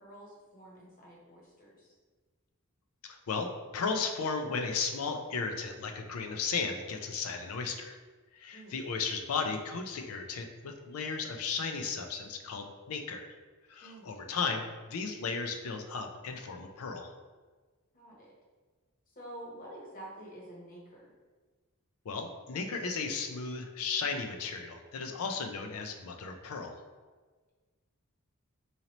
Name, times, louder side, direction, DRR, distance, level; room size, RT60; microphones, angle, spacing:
voice 1, 0.0-1.9 8.5-8.8 13.8-14.1 17.9-18.3 19.2-21.1, right 1 dB, 40° left, -4 dB, 1.0 m, -49 dB
voice 2, 3.0-8.0 8.3-13.3 13.7-17.1 22.1-26.7, left 5 dB, 75° left, 4 dB, 0.4 m, -35 dB
3.9 x 2.8 x 2.9 m, 1.4 s
head